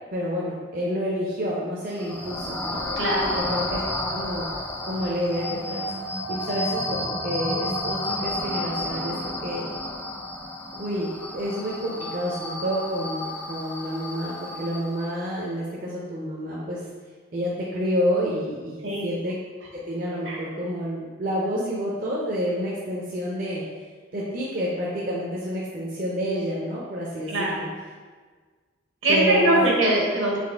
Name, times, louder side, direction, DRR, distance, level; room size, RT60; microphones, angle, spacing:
voice 1, 0.1-2.8 3.5-3.8 4.1-4.5 4.8-5.8 6.3-9.7 10.8-16.8 17.3-19.3 19.9-23.6 24.1-27.7 29.1-29.7, equal, 45° right, -5 dB, 0.5 m, -28 dB
sound 1, 1.9-15.3, left 1 dB, 10° left, 0.3 m, -31 dB
voice 2, 3.0-3.4 18.8-19.1 20.2-20.4 27.3-27.7 29.0-30.4, right 1 dB, 70° right, -3 dB, 1.0 m, -22 dB
4.1 x 3.0 x 3.3 m, 1.5 s
head